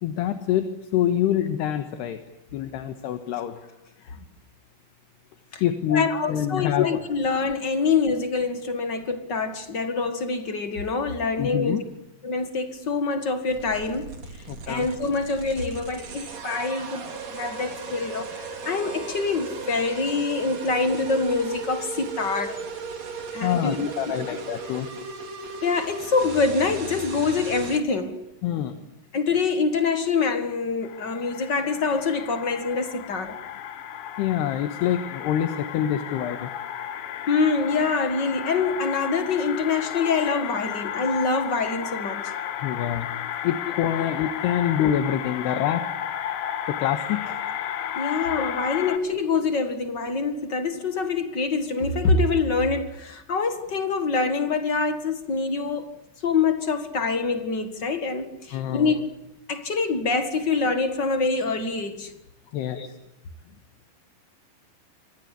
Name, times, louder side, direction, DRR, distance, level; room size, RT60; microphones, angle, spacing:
voice 1, 0.0-2.2 2.5-3.6 4.0-4.2 5.6-7.0 11.4-11.8 14.5-14.9 23.4-24.9 28.4-28.8 34.2-36.5 42.6-43.1 43.4-45.8 46.7-47.4 47.8-47.9 58.5-59.0 62.5-62.9, left 10 dB, 75° left, 3.4 m, -26 dB
voice 2, 5.9-11.9 12.2-14.1 14.7-22.6 23.3-24.1 25.6-28.2 29.1-33.4 37.3-42.3 44.0-44.1 47.9-55.9 56.2-59.1 59.5-62.1 62.7-62.9, left 4 dB, 55° left, 1.2 m, -25 dB
sound 1, 13.5-27.8, right 4 dB, 40° right, 3.9 m, -36 dB
sound 2, 30.8-49.0, left 10 dB, 90° left, 4.2 m, -33 dB
28.0 x 25.0 x 8.4 m
omnidirectional pair, 5.0 m